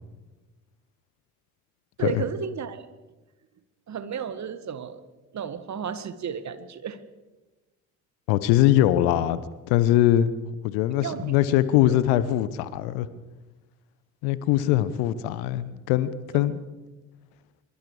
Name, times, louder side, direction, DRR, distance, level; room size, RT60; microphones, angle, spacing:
voice 1, 2.0-2.9 3.9-5.0 5.3-7.0 11.0-11.5 11.9-12.0 16.3-16.5, right 7 dB, 40° right, 12 dB, 1.8 m, -33 dB
voice 2, 8.3-10.3 10.6-13.1 14.2-16.6, left 13 dB, 65° left, 16 dB, 1.2 m, -22 dB
24.5 x 23.0 x 5.0 m, 1.2 s
figure-of-eight pair, 45°, 42 cm